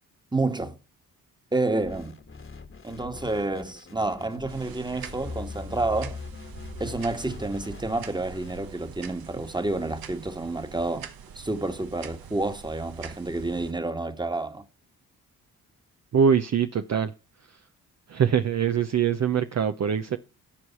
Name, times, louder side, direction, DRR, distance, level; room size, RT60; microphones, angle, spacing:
voice 1, 0.3-0.8 1.5-2.2 2.8-6.2 6.8-11.1 11.3-14.6, right 2 dB, 10° right, 1.5 m, -29 dB
sound 1, 1.8-8.7, left 4 dB, 35° left, 1.5 m, -41 dB
sound 2, 4.5-13.7, right 8 dB, 65° right, 1.1 m, -44 dB
voice 2, 16.1-17.1 18.1-20.2, right 7 dB, 45° right, 0.7 m, -23 dB
13.0 x 4.7 x 5.6 m
supercardioid pair, 50°, 38 cm